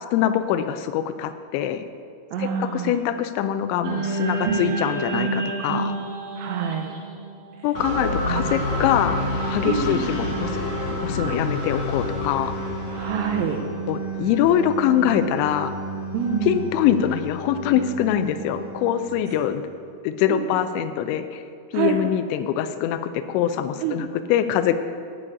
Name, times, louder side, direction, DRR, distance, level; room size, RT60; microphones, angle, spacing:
voice 1, 0.1-1.8 2.4-6.0 7.6-10.5 11.0-12.5 13.9-15.7 16.4-19.6 20.0-21.4 21.7-24.8, left 10 dB, 85° left, 9 dB, 2.6 m, -23 dB
voice 2, 2.3-3.0 4.4-4.6 6.4-6.9 8.3-8.6 9.6-10.1 12.9-13.6 16.1-16.6 20.3-20.5 21.7-22.0 23.8-24.0, right 7 dB, 85° right, 3 dB, 2.4 m, -26 dB
sound 1, 3.8-8.2, right 3 dB, 55° right, 3.0 m, -28 dB
sound 2, 7.7-19.5, left 1 dB, 45° left, 2.6 m, -29 dB
8.7 x 8.5 x 8.2 m, 2.2 s
omnidirectional pair, 5.8 m